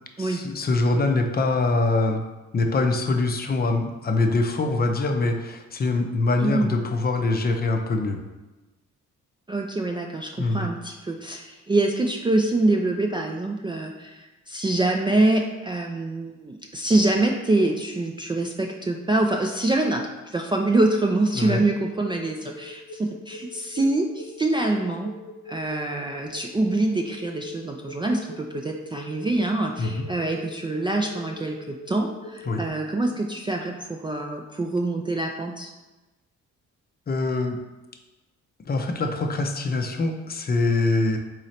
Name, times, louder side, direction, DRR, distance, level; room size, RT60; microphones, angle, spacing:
voice 1, 0.2-2.2 2.5-8.2 10.4-10.7 21.3-21.6 29.8-30.0 32.5-32.6 37.1-37.6 38.6-41.2, left 3 dB, 30° left, 4 dB, 0.6 m, -24 dB
voice 2, 9.5-20.1 20.3-25.1 25.5-35.7, right 2 dB, 15° right, 1 dB, 0.3 m, -25 dB
sound 1, 21.1-32.7, left 2 dB, 85° left, 0.9 m, -42 dB
3.8 x 3.1 x 4.2 m, 1.1 s
cardioid pair, 90°, 30 cm